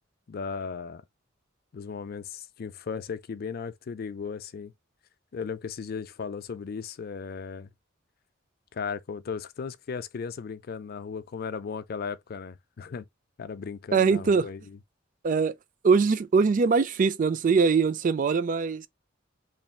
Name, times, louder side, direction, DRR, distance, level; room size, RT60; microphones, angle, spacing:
voice 1, 0.3-1.0 1.7-4.7 5.3-7.7 8.7-13.1 13.4-14.8, left 5 dB, 50° left, 0.4 m, -36 dB
voice 2, 13.9-14.5 15.2-15.6 15.8-18.9, right 5 dB, 40° right, 0.3 m, -22 dB
3.2 x 2.3 x 4.3 m
head